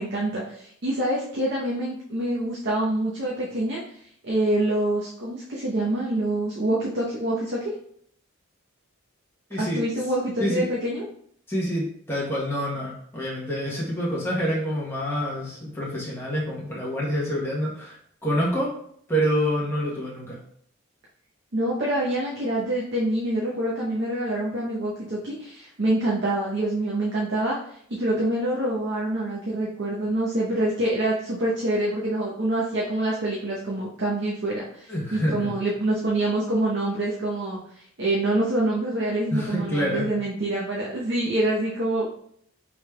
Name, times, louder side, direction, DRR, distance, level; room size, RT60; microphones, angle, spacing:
voice 1, 0.0-3.8 4.2-7.7 9.6-11.1 21.5-42.1, right 1 dB, 55° right, -5 dB, 0.8 m, -26 dB
voice 2, 9.5-9.8 10.4-10.6 11.5-18.7 19.1-20.4 34.9-35.5 39.3-40.1, equal, 10° left, -6 dB, 0.9 m, -27 dB
4.8 x 3.4 x 2.2 m, 0.65 s
head